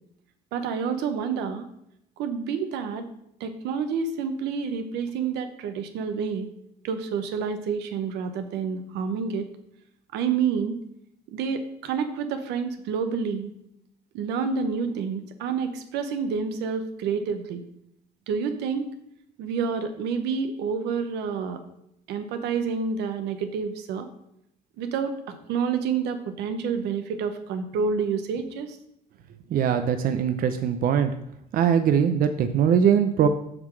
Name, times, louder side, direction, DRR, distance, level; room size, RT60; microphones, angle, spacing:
voice 1, 0.5-1.7 2.2-3.1 3.4-6.5 6.8-9.5 10.1-10.8 11.3-13.5 14.1-17.6 18.3-18.9 19.4-21.6 22.1-24.1 24.8-28.7, right 6 dB, 85° right, 8 dB, 0.9 m, -28 dB
voice 2, 29.5-31.1 31.5-33.3, right 8 dB, 60° right, 8 dB, 0.6 m, -21 dB
7.7 x 3.8 x 6.3 m, 0.78 s
cardioid pair, 110°, 17 cm